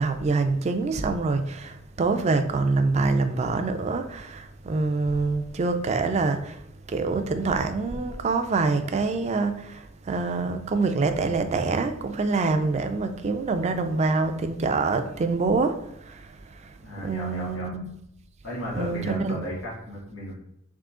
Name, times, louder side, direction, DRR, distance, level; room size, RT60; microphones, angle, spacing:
voice 1, 0.0-16.7 17.0-17.8 18.7-19.5, right 3 dB, 35° right, 0.3 m, -26 dB
voice 2, 16.8-17.7 18.4-20.4, equal, 75° left, 1.5 m, -34 dB
3.7 x 2.7 x 3.6 m
head